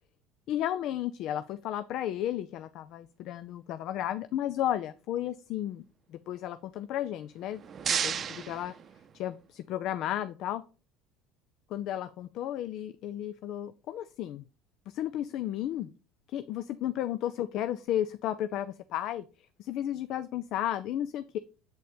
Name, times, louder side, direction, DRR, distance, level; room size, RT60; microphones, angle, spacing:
voice 1, 0.5-5.8 6.1-8.7 9.1-10.6 11.7-14.4 14.9-15.9 16.3-19.2 19.6-21.4, left 11 dB, 60° left, 13 dB, 0.4 m, -33 dB
sound 1, 7.3-9.5, right 7 dB, 40° right, 0.6 m, -34 dB
7.9 x 4.2 x 5.1 m, 0.35 s
hypercardioid pair, 75°, 0 cm